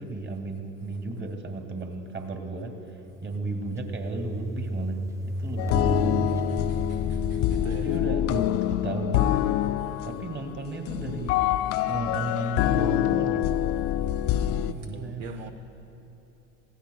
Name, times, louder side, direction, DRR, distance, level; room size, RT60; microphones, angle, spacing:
voice 1, 0.0-6.6 7.8-9.2 10.0-11.4 11.8-13.5 14.7-15.5, right 2 dB, 30° right, 4 dB, 2.1 m, -34 dB
sound 1, 3.0-8.7, right 1 dB, 5° right, 0.7 m, -34 dB
sound 2, 5.6-14.7, left 12 dB, 35° left, 0.4 m, -26 dB
voice 2, 7.5-7.8 14.9-15.5, right 9 dB, 65° right, 6 dB, 0.8 m, -41 dB
27.5 x 15.5 x 2.3 m, 3.0 s
hypercardioid pair, 80°, 41 cm